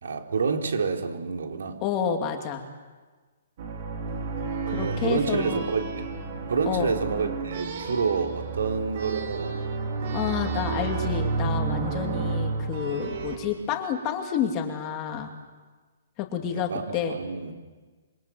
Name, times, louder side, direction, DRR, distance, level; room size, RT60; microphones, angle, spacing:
voice 1, 0.0-1.8 4.8-6.1 6.5-9.6 16.4-17.5, right 5 dB, 80° right, 4 dB, 3.9 m, -28 dB
voice 2, 1.8-2.6 4.7-5.6 6.7-6.9 10.1-15.3 16.2-17.2, left 8 dB, 20° left, 4 dB, 2.3 m, -29 dB
sound 1, 3.6-13.4, right 4 dB, 40° right, 3.8 m, -31 dB
26.5 x 24.5 x 7.8 m, 1.4 s
hypercardioid pair, 175°, 0 cm